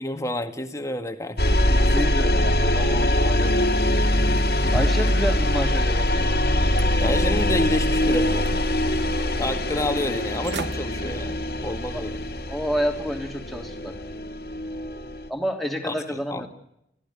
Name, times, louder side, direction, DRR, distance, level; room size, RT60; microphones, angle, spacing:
voice 1, 0.0-2.0 4.6-4.7 7.0-8.5 9.4-12.2 15.8-16.4, left 1 dB, 20° left, 6 dB, 1.9 m, -29 dB
sound 1, 1.4-15.3, left 1 dB, 60° left, 2.4 m, -23 dB
voice 2, 1.7-3.7 4.7-6.1 11.9-12.0 12.5-14.1 15.3-16.5, equal, ahead, 2 dB, 3.1 m, -29 dB
sound 2, 4.3-6.3 6.8-7.6 8.0-8.9 9.3-9.4 10.1-10.2 10.4-10.8 11.2-11.5 12.0-12.1, right 2 dB, 75° right, 1.0 m, -34 dB
29.5 x 15.0 x 9.8 m, 0.80 s
head